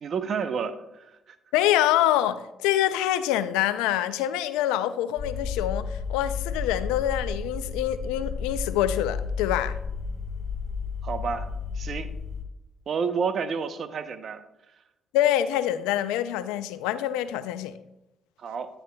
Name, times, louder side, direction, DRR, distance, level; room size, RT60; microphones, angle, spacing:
voice 1, 0.0-1.4 11.0-11.5 11.8-12.1 12.9-14.4 18.4-18.7, right 6 dB, 60° right, 11 dB, 0.7 m, -30 dB
voice 2, 1.5-9.8 15.1-17.8, left 12 dB, 90° left, 13 dB, 0.4 m, -25 dB
sound 1, 5.2-12.4, left 5 dB, 55° left, 1.4 m, -32 dB
10.0 x 9.5 x 2.2 m, 0.92 s
supercardioid pair, 60°, 0 cm